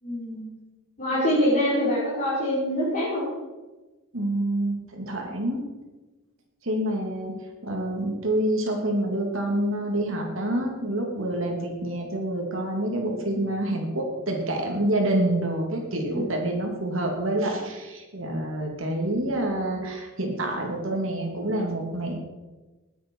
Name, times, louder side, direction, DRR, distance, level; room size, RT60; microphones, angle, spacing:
voice 1, 0.0-0.5 1.0-3.2 16.1-16.3, equal, 40° left, -10 dB, 5.8 m, -25 dB
voice 2, 4.1-5.6 6.6-7.3 7.6-22.2, right 1 dB, 65° right, 1 dB, 3.0 m, -27 dB
20.5 x 8.6 x 5.7 m, 1.2 s
head